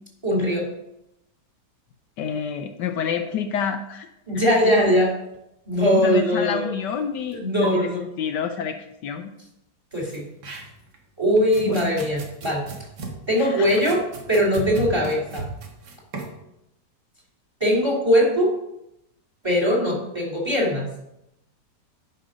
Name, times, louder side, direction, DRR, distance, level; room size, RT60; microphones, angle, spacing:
voice 1, 0.2-0.7 4.3-5.1 5.7-6.7 7.3-8.0 9.9-10.2 11.2-12.6 13.3-14.0 14.3-15.4 17.6-18.5 19.4-20.9, equal, 15° right, -2 dB, 2.7 m, -21 dB
voice 2, 2.2-4.1 4.3-4.5 6.0-9.3 11.6-11.8 13.4-13.8, left 7 dB, 75° left, 6 dB, 1.3 m, -29 dB
sound 1, 7.3-7.4 7.6-7.7 9.9-11.0 11.4-16.4, right 3 dB, 70° right, 2.1 m, -36 dB
10.5 x 5.8 x 5.0 m, 0.86 s
omnidirectional pair, 1.9 m